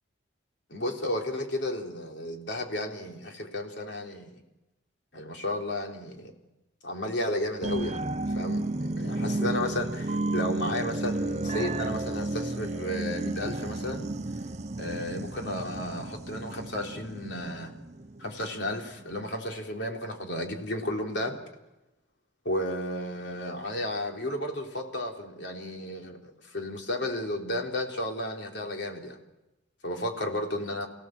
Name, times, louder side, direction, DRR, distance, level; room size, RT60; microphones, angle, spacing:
voice 1, 0.7-4.4 5.1-6.3 6.8-8.0 8.3-14.1 14.8-17.7 18.2-21.4 22.5-29.2 29.8-30.9, left 1 dB, 65° left, 2 dB, 3.6 m, -33 dB
sound 1, 7.6-18.7 19.1-19.2, right 2 dB, 35° right, 0.7 m, -32 dB
27.5 x 17.0 x 7.7 m, 0.99 s
head